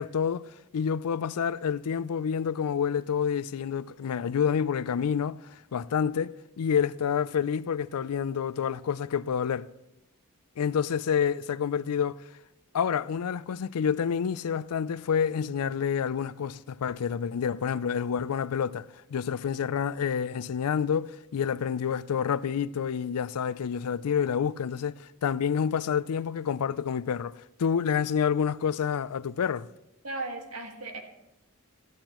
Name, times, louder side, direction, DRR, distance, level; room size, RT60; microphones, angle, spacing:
voice 1, 0.0-9.7 10.6-12.2 12.7-29.7, left 7 dB, 80° left, 0.4 m, -28 dB
voice 2, 30.0-31.0, right 2 dB, 70° right, 1.8 m, -36 dB
18.0 x 13.5 x 3.0 m
head